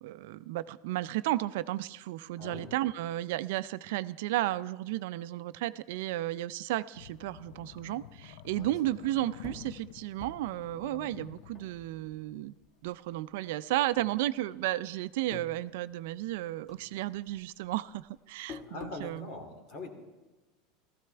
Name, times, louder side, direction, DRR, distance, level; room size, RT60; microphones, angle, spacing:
voice 1, 0.0-12.5 12.8-19.3, right 15 dB, 75° right, 15 dB, 0.4 m, -33 dB
voice 2, 2.4-2.7 8.6-8.7 18.4-19.9, left 3 dB, 55° left, 4 dB, 2.5 m, -43 dB
sound 1, 6.9-12.6, left 11 dB, 80° left, 0.4 m, -50 dB
sound 2, 9.4-12.3 12.6-13.4 13.9-14.8 15.1-16.4 16.7-19.1, left 4 dB, 30° left, 1.3 m, -49 dB
15.5 x 14.0 x 3.4 m, 1.2 s
supercardioid pair, 130°, 0 cm